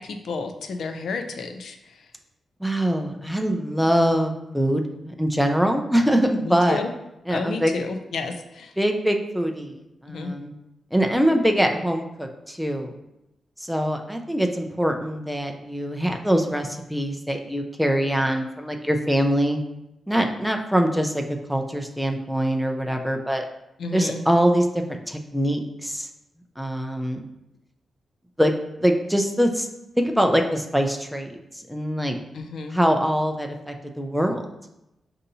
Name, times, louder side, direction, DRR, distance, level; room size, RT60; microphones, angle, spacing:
voice 1, 0.0-1.8 6.4-6.9 7.3-8.7 10.1-10.3 23.8-24.2 32.3-32.8, left 4 dB, 75° left, 6 dB, 0.5 m, -31 dB
voice 2, 2.6-6.8 7.3-7.7 8.8-10.5 10.9-12.9 13.6-19.6 20.1-21.2 21.5-23.5 23.9-26.1 26.6-27.3 28.4-28.5 28.8-29.7 30.0-31.4 31.7-32.2 32.7-34.4, equal, ahead, 3 dB, 0.3 m, -23 dB
6.4 x 2.7 x 2.7 m, 0.88 s
wide cardioid pair, 155°, 0 cm